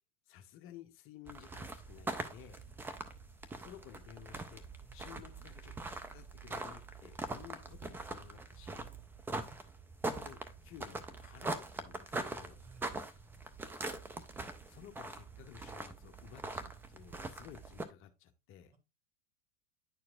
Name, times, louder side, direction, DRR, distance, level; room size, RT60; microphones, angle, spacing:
voice 1, 0.3-2.6 3.6-4.7 4.9-8.9 10.0-12.6 14.7-18.7, left 10 dB, 35° left, 7 dB, 0.9 m, -54 dB
sound 1, 1.3-17.8, right 2 dB, 5° right, 0.4 m, -43 dB
voice 2, 4.8-5.2 9.3-9.6 12.6-12.9, right 3 dB, 55° right, 5 dB, 1.9 m, -59 dB
9.8 x 4.4 x 2.4 m, 0.24 s
hypercardioid pair, 95°, 36 cm